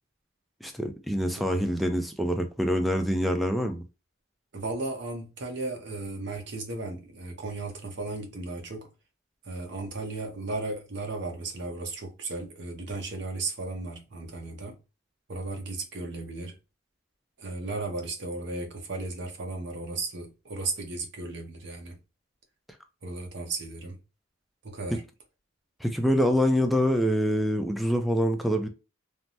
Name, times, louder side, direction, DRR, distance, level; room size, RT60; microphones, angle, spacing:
voice 1, 0.6-3.8 25.8-28.7, equal, ahead, 0.3 m, -25 dB
voice 2, 1.4-1.7 4.5-8.9 9.4-14.7 15.3-16.6 17.4-22.0 23.0-24.0 24.6-25.0, right 2 dB, 60° right, 0.7 m, -35 dB
3.2 x 2.0 x 2.7 m
head